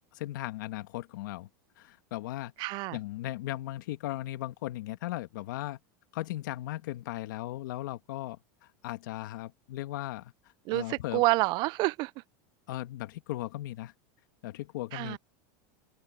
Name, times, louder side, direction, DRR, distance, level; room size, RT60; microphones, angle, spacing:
voice 1, 0.1-1.5 1.8-2.5 2.9-5.8 6.1-8.4 8.8-10.3 10.7-11.2 12.7-13.9 14.4-15.2, left 15 dB, 75° left, 1.8 m, -37 dB
voice 2, 2.6-3.0 10.7-12.1 14.9-15.2, right 23 dB, 45° right, 0.4 m, -28 dB
open air
supercardioid pair, 145°, 10 cm